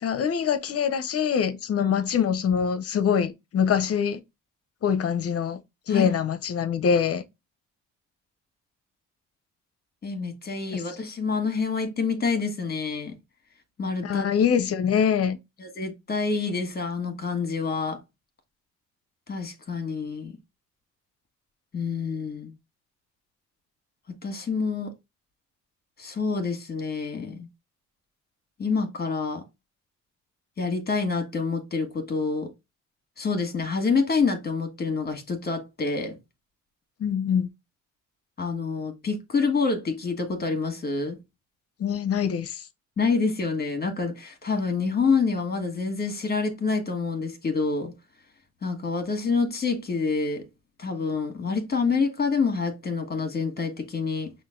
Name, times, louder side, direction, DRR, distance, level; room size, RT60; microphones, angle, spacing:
voice 1, 0.0-4.2 4.8-5.6 5.9-7.2 10.7-10.8 14.0-15.4 37.0-37.5 41.8-42.6, left 7 dB, 50° left, 0.7 m, -24 dB
voice 2, 10.0-13.2 13.8-14.3 15.6-18.0 19.3-20.4 21.7-22.5 24.2-24.9 26.0-27.5 28.6-29.4 30.6-32.5 33.2-36.2 38.4-41.2 43.0-47.9 48.6-50.5 50.8-54.3, left 4 dB, 30° left, 1.7 m, -27 dB
5.6 x 2.6 x 3.7 m
cardioid pair, 90°, 30 cm